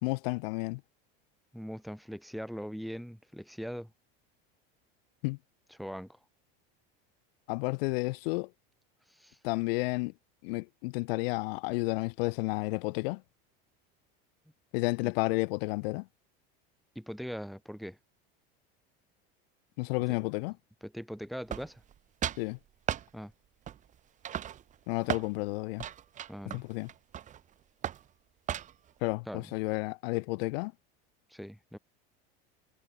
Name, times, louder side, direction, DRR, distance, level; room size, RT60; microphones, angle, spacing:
voice 1, 0.0-0.8 5.2-5.4 7.5-8.5 9.4-10.1 10.4-13.2 14.7-16.1 19.8-20.5 22.4-22.6 24.9-25.8 26.5-26.9 29.0-30.7, left 26 dB, 80° left, 0.5 m, -31 dB
voice 2, 1.5-3.9 5.8-6.1 9.1-9.4 15.0-15.1 16.9-18.0 20.8-21.8 23.1-23.3 26.3-26.6 29.3-29.5 31.3-31.8, equal, ahead, 2.6 m, -41 dB
sound 1, 21.5-21.9 22.2-22.5 22.9-23.1 23.7-23.9 24.2-25.3 25.8-27.4 27.8-28.1 28.5-28.9, right 10 dB, 25° right, 0.7 m, -36 dB
supercardioid pair, 135°, 29 cm